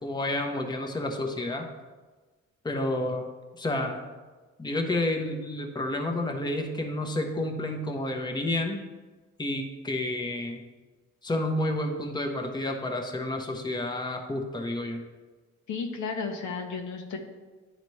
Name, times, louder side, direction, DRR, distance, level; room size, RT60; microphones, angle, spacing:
voice 1, 0.0-1.7 2.6-3.3 3.6-4.0 4.6-8.8 9.4-10.6 11.2-15.0, left 1 dB, 15° left, 3 dB, 0.8 m, -30 dB
voice 2, 15.7-17.2, left 5 dB, 70° left, 3 dB, 1.0 m, -33 dB
10.5 x 4.1 x 3.2 m, 1.3 s
cardioid pair, 90°, 30 cm